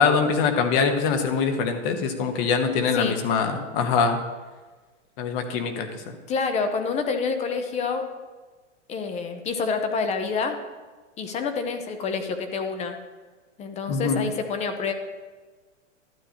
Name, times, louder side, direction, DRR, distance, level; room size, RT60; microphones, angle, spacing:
voice 1, 0.0-4.2 5.2-6.1 13.9-14.2, left 5 dB, 45° left, 6 dB, 1.2 m, -23 dB
voice 2, 6.3-8.1 8.9-10.6 11.2-13.0 13.6-14.9, left 5 dB, 20° left, 7 dB, 0.6 m, -27 dB
12.0 x 8.9 x 2.9 m, 1.3 s
hypercardioid pair, 135°, 39 cm